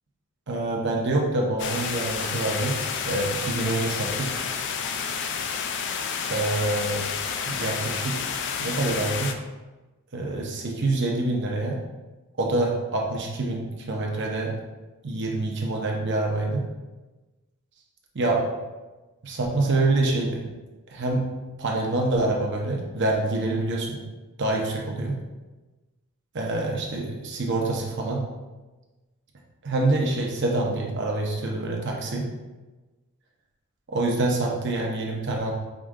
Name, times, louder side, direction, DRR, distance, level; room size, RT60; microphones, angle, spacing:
voice 1, 0.5-2.8 3.1-4.3 6.3-7.0 7.4-9.3 10.1-11.8 12.4-14.5 15.0-16.6 18.1-18.4 19.2-20.4 20.9-21.2 21.6-24.0 24.4-25.1 26.3-28.2 29.6-32.2 33.9-35.5, right 2 dB, 55° right, 0 dB, 0.8 m, -26 dB
sound 1, 1.6-9.3, left 6 dB, 55° left, 0.4 m, -30 dB
5.0 x 2.4 x 3.6 m, 1.2 s
head